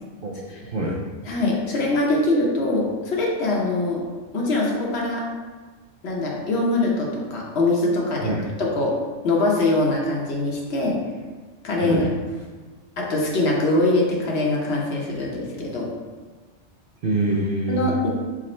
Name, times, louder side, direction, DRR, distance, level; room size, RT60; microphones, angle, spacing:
voice 1, 0.2-1.0 8.2-8.4 11.8-12.1 17.0-17.9, right 2 dB, 60° right, -3 dB, 0.6 m, -25 dB
voice 2, 1.2-4.0 4.3-5.2 6.0-8.3 8.6-8.9 9.2-11.0 11.6-12.1 13.0-15.9 17.7-18.1, left 2 dB, 60° left, -2 dB, 0.9 m, -23 dB
4.9 x 2.0 x 4.2 m, 1.4 s
omnidirectional pair, 1.3 m